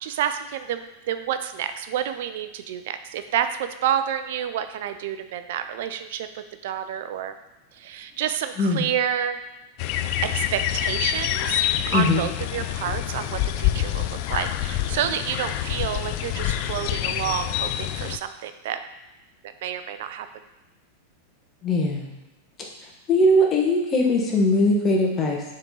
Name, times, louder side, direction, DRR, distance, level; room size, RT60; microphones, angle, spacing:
voice 1, 0.0-7.3 7.8-9.4 10.2-11.6 11.9-18.8 19.6-20.3, right 9 dB, 70° right, 10 dB, 0.4 m, -29 dB
sound 1, 9.8-18.2, left 12 dB, 55° left, 0.3 m, -26 dB
voice 2, 11.9-12.2 21.6-22.1 23.1-25.4, left 1 dB, 30° left, 0 dB, 1.4 m, -20 dB
7.1 x 3.7 x 3.9 m, 1.0 s
hypercardioid pair, 110°, 0 cm